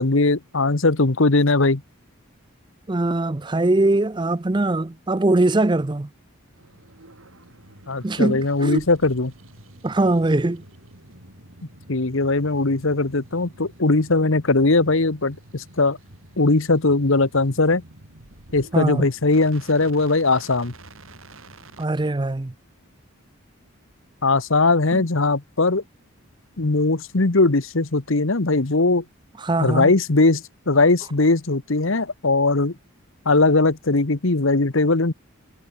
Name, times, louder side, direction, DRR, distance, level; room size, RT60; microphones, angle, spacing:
voice 1, 0.0-1.8 7.9-9.3 11.9-16.0 16.4-17.8 18.5-20.7 24.2-25.8 26.6-29.0 29.6-32.7 33.2-35.1, left 3 dB, 65° left, 1.2 m, -19 dB
voice 2, 2.9-6.1 8.0-8.8 9.8-10.6 18.7-19.1 21.8-22.5 24.9-25.0 29.4-29.9, right 2 dB, 20° right, 0.5 m, -21 dB
sound 1, 6.5-21.9, right 2 dB, 70° right, 4.2 m, -48 dB
head